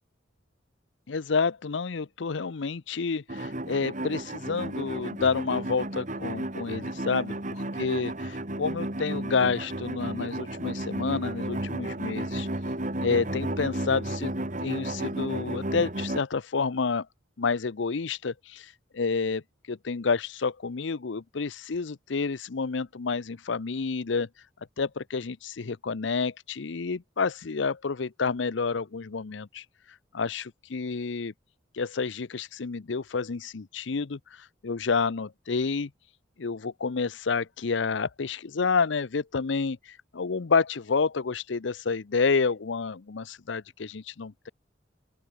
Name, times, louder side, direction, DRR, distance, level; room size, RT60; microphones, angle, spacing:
voice 1, 1.1-12.5 13.0-14.3 14.6-17.1 17.4-19.4 19.7-24.3 24.8-29.6 30.1-31.3 31.7-35.9 36.4-44.5, left 4 dB, 70° left, 0.6 m, -29 dB
sound 1, 3.3-16.2, right 1 dB, 40° right, 3.0 m, -33 dB
open air
head